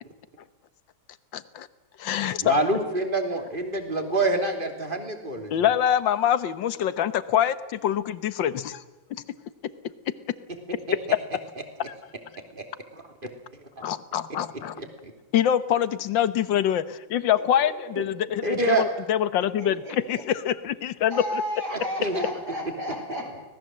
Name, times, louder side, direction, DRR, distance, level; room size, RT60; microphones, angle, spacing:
voice 1, 1.3-1.7 2.0-2.5 5.5-8.8 9.1-9.2 13.8-14.8 15.3-21.4, left 10 dB, 70° left, 14 dB, 1.7 m, -25 dB
voice 2, 2.4-5.7 12.5-12.6 12.9-13.0 13.8-13.9 14.8-15.1 18.0-18.1 18.4-18.8 21.7-22.3, right 2 dB, 25° right, 4 dB, 3.2 m, -27 dB
voice 3, 17.3-17.7 19.6-20.2 21.1-23.4, left 1 dB, 55° right, 2 dB, 6.7 m, -33 dB
25.0 x 19.5 x 7.7 m, 1.1 s
omnidirectional pair, 2.1 m